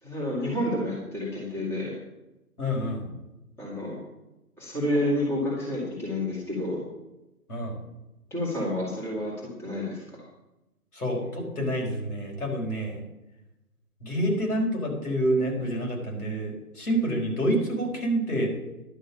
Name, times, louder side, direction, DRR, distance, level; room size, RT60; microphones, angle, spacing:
voice 1, 0.0-2.0 3.6-4.0 4.6-6.8 8.3-10.0, left 1 dB, 5° left, -6 dB, 2.3 m, -29 dB
voice 2, 2.6-3.1 7.5-7.8 10.9-13.0 14.0-18.5, right 1 dB, 70° left, -1 dB, 4.9 m, -28 dB
11.0 x 6.3 x 8.6 m, 0.98 s
figure-of-eight pair, 145°, 46 cm